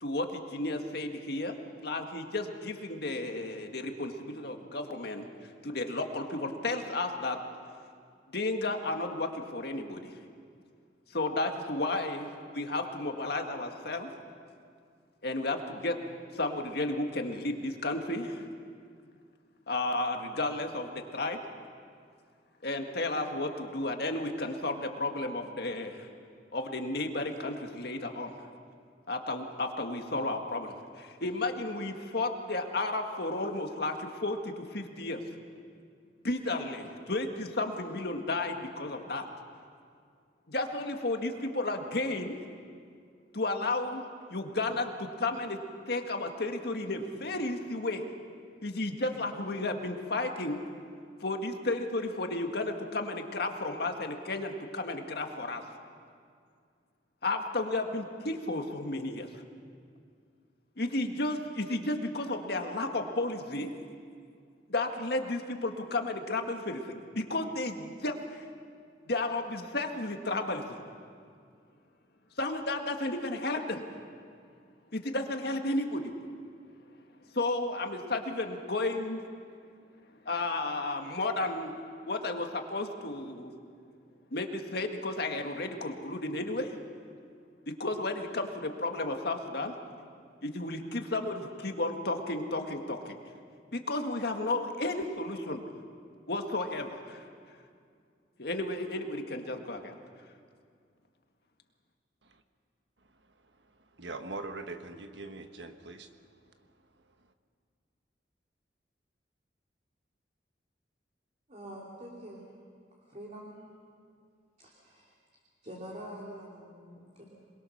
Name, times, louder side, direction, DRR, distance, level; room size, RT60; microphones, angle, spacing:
voice 1, 0.0-5.3 5.6-7.4 8.3-10.1 11.1-14.1 15.2-16.0 16.3-18.4 19.7-21.4 22.6-26.1 26.5-28.3 29.1-35.2 36.2-39.2 40.5-42.3 43.3-44.0 44.3-45.6 45.9-48.0 48.6-50.6 51.2-55.6 57.2-59.4 60.8-63.7 64.7-68.4 69.1-70.8 72.4-73.8 74.9-76.1 77.3-79.2 80.3-81.7 82.1-83.5 84.3-86.8 87.8-89.7 90.4-93.1 93.7-95.6 96.3-97.2 98.4-99.9, left 2 dB, 60° left, 4 dB, 1.9 m, -33 dB
voice 2, 103.4-106.1, right 3 dB, 75° right, 7 dB, 1.4 m, -42 dB
voice 3, 111.5-112.4 113.1-113.5 114.6-115.1 115.6-117.2, equal, 40° right, -3 dB, 3.0 m, -45 dB
27.0 x 21.5 x 6.5 m, 2.2 s
head